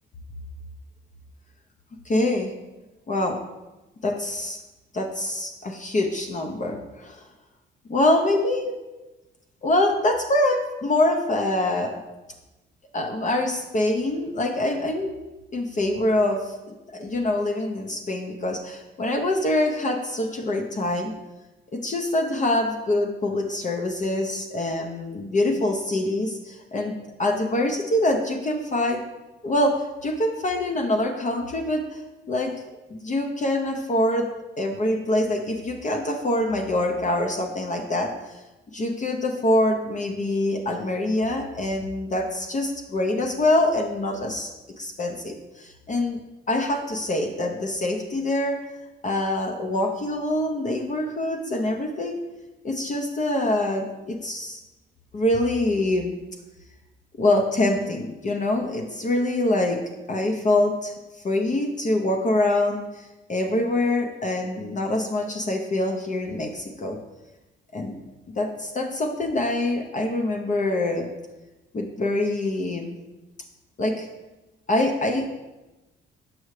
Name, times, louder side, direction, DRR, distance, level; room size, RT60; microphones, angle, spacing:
voice 1, 2.0-2.5 3.1-3.4 4.0-4.6 4.9-7.3 7.9-8.7 9.6-12.0 12.9-15.1 15.5-21.1 21.8-29.0 29.4-32.0 32.3-32.5 32.9-34.3 34.6-38.4 38.7-44.5 44.8-46.2 46.5-48.6 49.0-52.2 52.6-54.6 55.1-56.1 57.2-59.8 60.1-67.0 67.7-68.0 68.3-71.1 71.7-73.0 73.8-74.1 74.7-75.3, left 1 dB, 40° left, 3 dB, 0.7 m, -25 dB
6.3 x 5.4 x 3.2 m, 1.1 s
cardioid pair, 90°, 20 cm